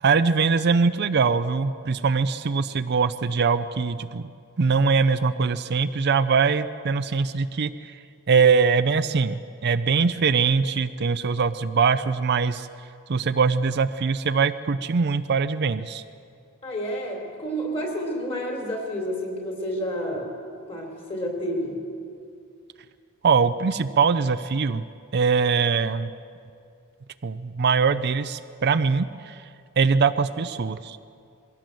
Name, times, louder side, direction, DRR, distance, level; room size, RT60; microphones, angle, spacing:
voice 1, 0.0-4.2 4.6-8.0 8.3-12.7 13.1-16.0 23.2-24.8 25.1-26.1 27.2-29.4 29.8-31.0, right 5 dB, 50° right, 12 dB, 0.5 m, -22 dB
voice 2, 16.6-20.3 20.7-21.8, equal, 25° left, 2 dB, 3.5 m, -30 dB
21.5 x 16.5 x 7.7 m, 2.4 s
head